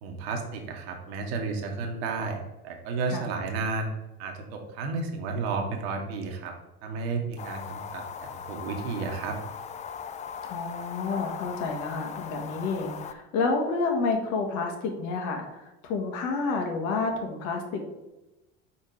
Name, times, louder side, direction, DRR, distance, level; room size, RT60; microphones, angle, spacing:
voice 1, 0.0-3.9 4.2-6.5 6.8-9.3, right 4 dB, 75° right, 3 dB, 1.3 m, -32 dB
sound 1, 7.4-13.1, left 7 dB, 25° left, 0.4 m, -39 dB
voice 2, 10.4-17.9, left 4 dB, 60° left, 3 dB, 1.6 m, -29 dB
5.0 x 4.3 x 4.8 m, 1.0 s
supercardioid pair, 110°, 31 cm